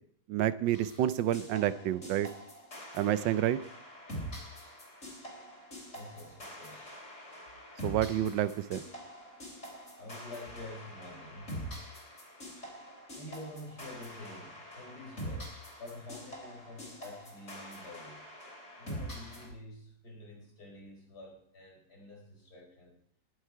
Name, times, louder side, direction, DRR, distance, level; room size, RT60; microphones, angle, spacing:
voice 1, 0.3-2.3 2.9-3.6 7.8-8.8, right 12 dB, 85° right, 15 dB, 1.4 m, -29 dB
sound 1, 0.7-19.5, equal, 40° left, 4.2 m, -45 dB
voice 2, 5.9-7.0 10.0-11.8 13.1-18.3 18.8-23.0, left 1 dB, 60° left, -1 dB, 5.2 m, -48 dB
20.5 x 8.1 x 4.7 m, 0.65 s
omnidirectional pair, 1.9 m